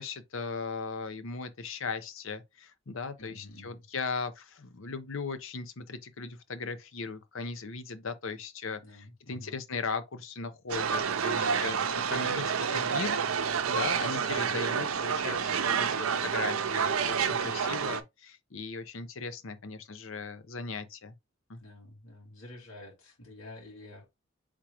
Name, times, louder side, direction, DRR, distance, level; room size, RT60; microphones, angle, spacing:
voice 1, 0.0-21.1 21.5-21.6, left 4 dB, 75° left, 0.7 m, -38 dB
voice 2, 3.2-3.9 8.8-9.6 11.3-12.0 14.3-14.7 17.2-17.6 21.6-24.3, left 1 dB, 90° left, 2.2 m, -49 dB
sound 1, 10.7-18.0, right 6 dB, 90° right, 0.6 m, -29 dB
4.7 x 3.7 x 2.9 m
head